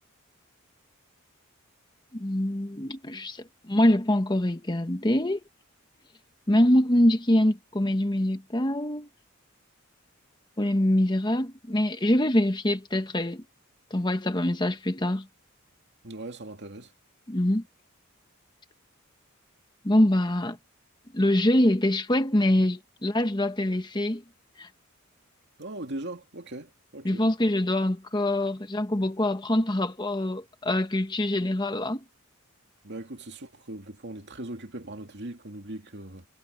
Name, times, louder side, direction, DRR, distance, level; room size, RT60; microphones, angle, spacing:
voice 1, 2.1-5.4 6.5-9.1 10.6-13.4 13.9-15.3 17.3-17.6 19.8-20.6 21.1-24.2 24.6-24.7 27.0-32.0, left 1 dB, 20° left, 1.1 m, -24 dB
voice 2, 16.0-16.9 25.6-27.3 32.8-36.3, right 1 dB, 55° right, 2.5 m, -39 dB
head